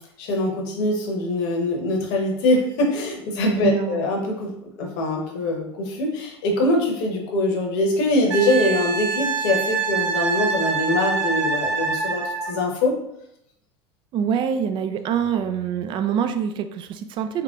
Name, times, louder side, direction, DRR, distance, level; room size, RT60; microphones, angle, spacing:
voice 1, 0.2-13.0, left 1 dB, 55° left, 1 dB, 0.9 m, -23 dB
voice 2, 3.6-4.0 14.1-17.4, right 8 dB, 35° right, 8 dB, 0.4 m, -25 dB
Wind instrument woodwind instrument, 8.3-12.5 15.2-15.4, right 5 dB, 90° right, 0.8 m, -25 dB
3.8 x 3.1 x 2.4 m, 0.78 s
figure-of-eight pair, 80°, 14 cm